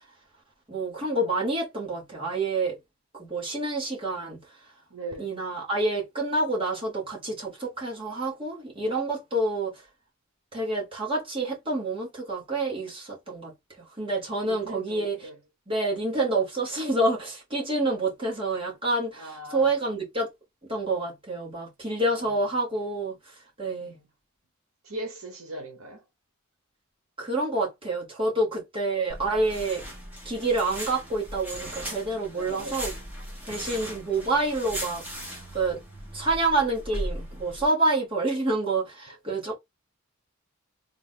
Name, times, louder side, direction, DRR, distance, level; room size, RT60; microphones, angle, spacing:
voice 1, 0.7-2.8 3.2-4.4 5.2-9.7 10.5-13.5 14.0-15.3 15.7-20.3 20.7-23.1 23.6-24.0 27.2-29.8 30.3-32.9 33.5-35.8 36.1-39.6, right 2 dB, 25° right, 1.8 m, -28 dB
voice 2, 4.9-5.3 14.5-15.4 19.2-19.7 22.1-22.4 23.8-24.1 24.8-26.0 32.3-32.9, right 2 dB, 75° right, 1.1 m, -39 dB
sound 1, 29.1-37.6, equal, 10° right, 1.3 m, -38 dB
3.9 x 2.6 x 3.6 m
head